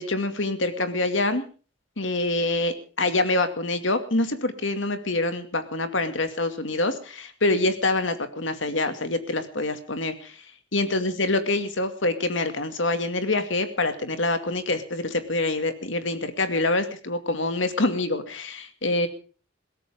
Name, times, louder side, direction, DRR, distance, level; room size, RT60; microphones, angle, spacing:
voice 1, 0.0-1.4 2.0-10.4 10.7-19.1, left 2 dB, 70° left, 8 dB, 2.4 m, -26 dB
22.0 x 17.5 x 3.7 m, 0.39 s
head